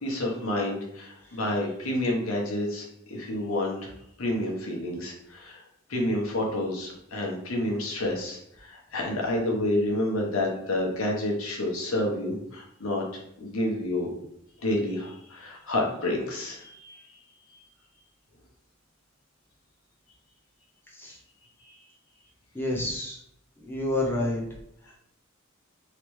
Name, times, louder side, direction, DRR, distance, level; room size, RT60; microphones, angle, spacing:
voice 1, 0.0-3.9 4.2-5.6 5.9-13.0 13.4-14.1 14.6-17.0 21.6-21.7, left 1 dB, 80° left, -1 dB, 0.9 m, -29 dB
voice 2, 22.5-23.2 23.6-24.4 24.9-25.0, left 1 dB, 10° left, -3 dB, 0.5 m, -29 dB
3.2 x 2.9 x 3.1 m, 0.75 s
head